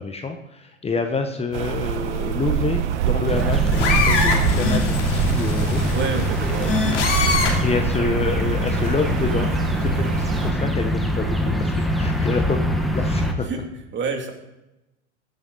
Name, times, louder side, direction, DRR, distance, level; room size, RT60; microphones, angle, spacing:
voice 1, 0.0-5.9 7.4-13.5, left 4 dB, 15° left, 5 dB, 1.1 m, -27 dB
Rain, 1.5-10.5, right 10 dB, 75° right, 0.9 m, -26 dB
sound 1, 3.3-13.3, equal, ahead, 1.4 m, -23 dB
sound 2, 3.4-7.7 8.7-8.9, left 4 dB, 85° left, 3.1 m, -24 dB
voice 2, 5.9-6.8 13.4-13.6 13.9-14.3, right 4 dB, 30° right, 3 dB, 2.5 m, -27 dB
15.5 x 9.0 x 4.0 m, 0.94 s
hypercardioid pair, 95°, 35 cm